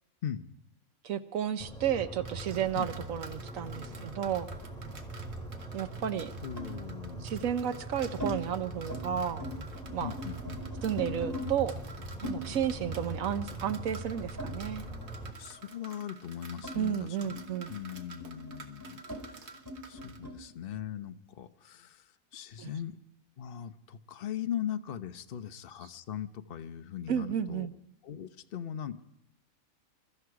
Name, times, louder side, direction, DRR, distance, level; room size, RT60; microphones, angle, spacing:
voice 1, 1.0-4.5 5.7-6.3 7.2-9.4 9.9-10.1 10.8-11.7 12.2-14.8 16.8-17.7 22.6-22.7 27.1-27.7, right 9 dB, 70° right, 11 dB, 1.2 m, -32 dB
sound 1, 1.6-15.3, right 2 dB, 5° left, 2.4 m, -42 dB
sound 2, 2.2-20.2, right 4 dB, 55° right, 1.5 m, -51 dB
sound 3, 3.7-5.3 6.6-6.8 7.5-8.3 8.7-9.0 9.3-11.5 12.2-15.1 15.4-20.4, left 1 dB, 15° right, 3.3 m, -43 dB
voice 2, 6.4-7.3 10.0-10.6 15.4-17.4 17.7-19.6 19.9-23.0 23.4-27.7 28.0-29.0, left 9 dB, 50° left, 9 dB, 0.8 m, -40 dB
22.5 x 13.0 x 4.8 m, 0.81 s
omnidirectional pair, 1.5 m